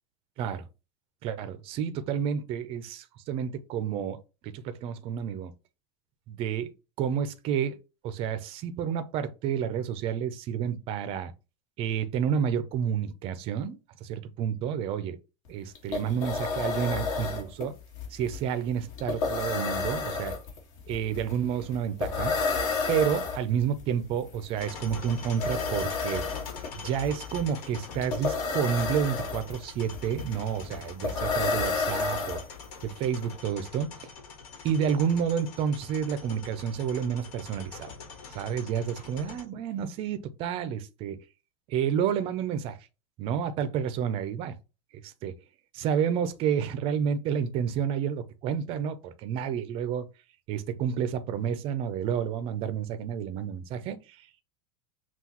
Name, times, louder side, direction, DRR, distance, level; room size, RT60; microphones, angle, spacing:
voice 1, 1.2-4.2 4.4-5.5 6.3-6.7 7.0-7.8 8.0-11.3 11.8-15.2 15.5-17.7 18.1-20.3 20.9-22.3 22.9-26.2 26.8-32.4 32.8-33.9 34.6-38.0 38.3-41.2 41.7-42.8 43.2-44.5 45.0-45.3 45.7-50.0 50.5-54.2, right 8 dB, 30° right, 0.5 m, -30 dB
sound 1, 15.4-15.5 15.7-32.8, left 4 dB, 60° left, 1.7 m, -31 dB
sound 2, 24.6-39.4, left 5 dB, 85° left, 1.4 m, -44 dB
5.7 x 2.3 x 2.9 m
supercardioid pair, 165°, 19 cm